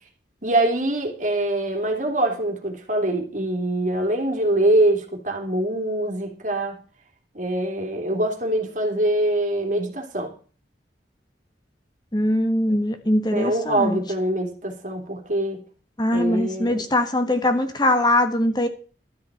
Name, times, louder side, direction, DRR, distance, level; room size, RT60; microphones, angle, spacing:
voice 1, 0.4-6.7 7.3-10.3 13.3-15.6 16.1-16.8, right 1 dB, 45° right, 3 dB, 2.9 m, -24 dB
voice 2, 12.1-14.0 16.0-18.7, left 1 dB, 25° left, 6 dB, 1.4 m, -21 dB
13.0 x 5.8 x 9.0 m, 0.38 s
head